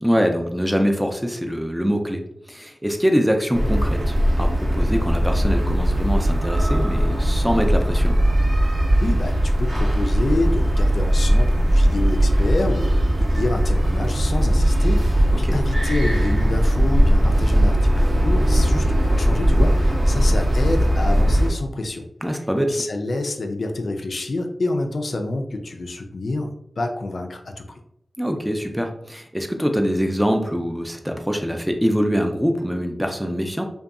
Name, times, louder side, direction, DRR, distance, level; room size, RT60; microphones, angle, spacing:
voice 1, 0.0-2.2 2.5-8.1 15.4-15.6 22.2-22.8 28.2-33.7, equal, 5° right, 4 dB, 0.4 m, -23 dB
sound 1, 3.5-21.5, equal, 70° right, 0.7 m, -19 dB
voice 2, 9.0-22.1 22.7-27.8, left 2 dB, 70° left, 3 dB, 0.3 m, -27 dB
2.6 x 2.2 x 2.3 m, 0.75 s
cardioid pair, 55°, 0 cm